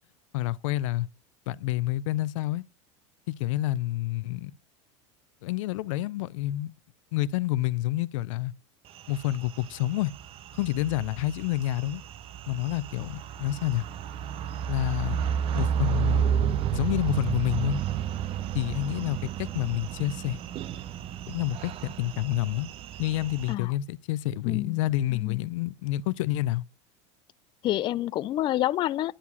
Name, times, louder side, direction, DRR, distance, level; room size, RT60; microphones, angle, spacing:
voice 1, 0.3-1.1 1.5-2.6 3.3-4.5 5.4-6.7 7.1-8.5 9.1-10.1 10.5-12.0 12.5-13.8 14.7-15.3 15.5-16.4 16.7-17.8 18.5-20.4 21.3-22.7 23.0-26.6, left 15 dB, 80° left, 0.5 m, -28 dB
sound 1, 8.9-23.5, right 9 dB, 35° right, 0.6 m, -32 dB
voice 2, 24.5-24.8 25.1-25.5 27.6-29.1, left 14 dB, 30° left, 0.4 m, -28 dB
10.0 x 4.7 x 5.5 m
supercardioid pair, 135°, 16 cm